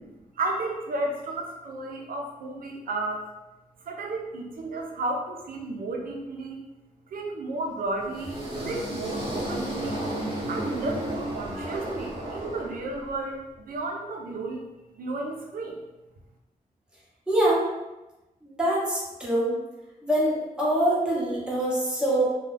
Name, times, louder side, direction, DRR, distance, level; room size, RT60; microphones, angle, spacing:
voice 1, 0.3-3.2 3.8-6.6 7.1-10.1 10.5-14.6 15.0-15.8, right 2 dB, 75° right, 0 dB, 0.5 m, -33 dB
sound 1, 8.0-13.1, right 1 dB, 35° right, 0.9 m, -33 dB
voice 2, 17.3-17.7 18.4-19.5 20.0-22.3, right 1 dB, 5° right, -7 dB, 1.0 m, -24 dB
2.3 x 2.2 x 3.2 m, 1.0 s
wide cardioid pair, 105°, 15 cm